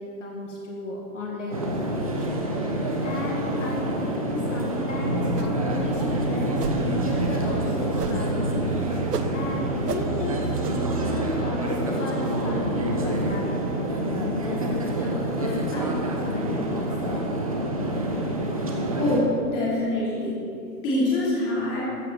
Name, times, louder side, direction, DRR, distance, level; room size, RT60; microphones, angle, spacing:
voice 1, 0.0-9.0 9.3-13.5 13.9-17.3, left 2 dB, 50° left, -1 dB, 2.1 m, -34 dB
sound 1, 1.5-19.2, right 1 dB, 20° right, 0.9 m, -27 dB
sound 2, 5.3-5.7 6.0-6.1 6.5-6.8 8.0-8.4 8.7-9.4 9.8-10.1 10.6-10.8, right 7 dB, 70° right, 1.2 m, -33 dB
voice 2, 19.0-20.4 20.8-21.8, left 1 dB, 10° left, -8 dB, 3.0 m, -24 dB
14.0 x 7.8 x 8.3 m, 2.5 s
hypercardioid pair, 180°, 48 cm